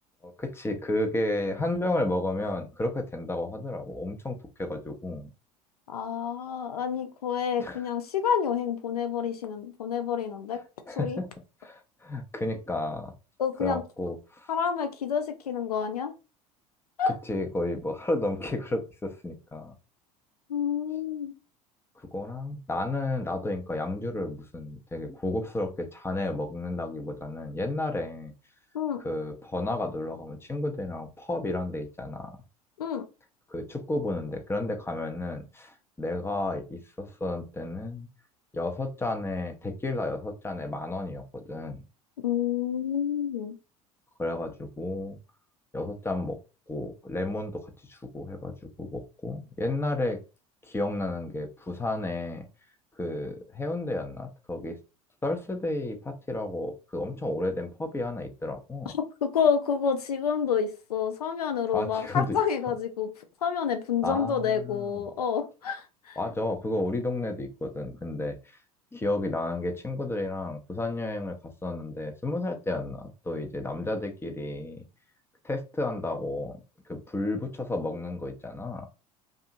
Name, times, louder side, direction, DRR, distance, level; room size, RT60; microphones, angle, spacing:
voice 1, 0.2-5.3 7.6-7.9 10.9-11.3 11.6-13.1 13.6-14.5 17.2-19.7 22.0-28.3 29.0-32.3 33.5-38.1 38.5-41.8 44.2-45.2 45.7-46.4 46.7-50.2 50.6-52.5 53.0-54.8 55.2-58.9 61.7-62.4 64.0-65.0 66.2-68.4 68.9-74.8 75.4-76.6 76.9-78.9, left 2 dB, 10° left, 6 dB, 0.6 m, -32 dB
voice 2, 5.9-10.6 11.0-11.2 13.4-13.8 14.5-16.1 17.0-17.2 20.5-21.3 28.7-29.0 32.8-33.1 42.2-43.5 58.9-63.1 63.4-66.2, left 7 dB, 85° left, 8 dB, 0.5 m, -28 dB
2.7 x 2.4 x 2.6 m, 0.31 s
figure-of-eight pair, 70°, 19 cm